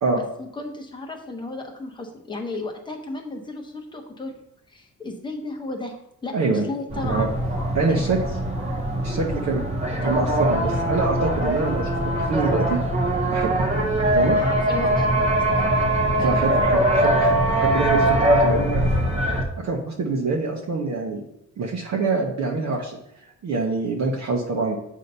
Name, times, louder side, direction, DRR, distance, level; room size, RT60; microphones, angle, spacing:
voice 1, 0.1-4.3 4.7-7.4 7.9-8.0 14.3-15.9 16.2-16.4, left 2 dB, 15° left, 2 dB, 0.8 m, -34 dB
voice 2, 6.3-6.7 7.0-7.3 7.7-8.2 9.0-9.6 10.0-12.8 13.3-13.6 14.1-14.4 16.2-18.8 19.6-21.2 21.6-23.0 23.4-24.8, right 3 dB, 55° right, -1 dB, 0.8 m, -25 dB
sound 1, 6.9-19.4, right 1 dB, 20° right, 0.8 m, -22 dB
7.9 x 2.8 x 5.4 m, 0.78 s
wide cardioid pair, 170°, 32 cm